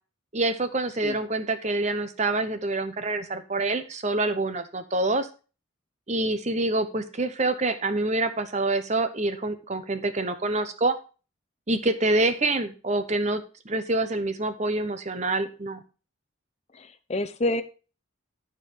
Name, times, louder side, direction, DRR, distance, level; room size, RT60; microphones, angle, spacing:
voice 1, 0.3-5.3 6.1-11.0 11.7-15.8, right 2 dB, 35° right, 10 dB, 0.9 m, -26 dB
voice 2, 16.7-17.6, left 1 dB, 30° left, 11 dB, 0.6 m, -28 dB
12.5 x 4.6 x 5.4 m, 0.35 s
head